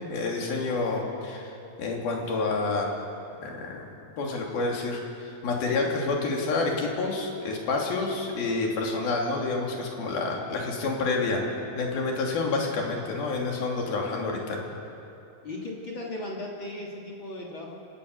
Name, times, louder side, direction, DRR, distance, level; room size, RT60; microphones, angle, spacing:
voice 1, 0.1-2.9 3.4-3.9 4.2-11.4 11.8-14.6, left 3 dB, 85° left, 0 dB, 4.7 m, -28 dB
voice 2, 15.4-17.8, left 1 dB, 35° left, -2 dB, 3.1 m, -37 dB
29.0 x 17.5 x 6.6 m, 2.7 s
omnidirectional pair, 4.2 m